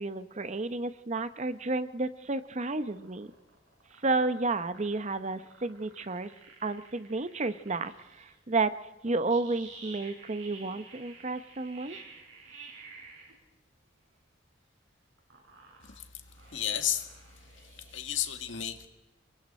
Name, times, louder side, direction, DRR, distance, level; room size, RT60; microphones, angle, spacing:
voice 1, 0.0-3.3 4.0-6.3 6.6-8.7 9.0-12.0, right 3 dB, 40° right, 12 dB, 0.8 m, -31 dB
sound 1, 2.5-8.4 9.3-13.3 15.2-18.3, right 4 dB, 80° right, 6.3 m, -51 dB
voice 2, 15.8-16.2 16.5-17.1 17.6-18.9, left 10 dB, 80° left, 7 dB, 1.9 m, -33 dB
28.0 x 22.0 x 4.3 m, 1.1 s
head